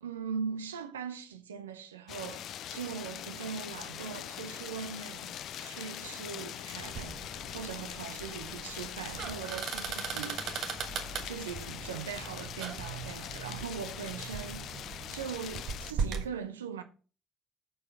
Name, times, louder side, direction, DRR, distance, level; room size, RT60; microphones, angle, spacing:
voice 1, 0.0-10.8 11.2-14.7 15.1-16.8, right 6 dB, 80° right, 0.8 m, -40 dB
sound 1, 2.1-15.9, left 11 dB, 55° left, 0.5 m, -42 dB
sound 2, 6.8-16.3, right 6 dB, 55° right, 1.4 m, -39 dB
6.7 x 5.4 x 6.7 m
figure-of-eight pair, 50°, 0 cm